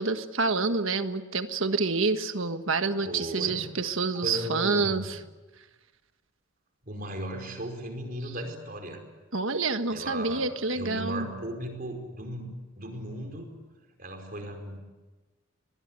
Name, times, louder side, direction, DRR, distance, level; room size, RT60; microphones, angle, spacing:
voice 1, 0.0-5.2 9.3-11.3, right 3 dB, 65° right, 8 dB, 1.5 m, -28 dB
voice 2, 3.0-3.6 4.1-5.1 6.8-9.0 9.9-12.5 12.8-13.5 14.0-14.8, right 1 dB, 40° right, 4 dB, 4.9 m, -36 dB
24.0 x 20.0 x 9.8 m, 1.2 s
head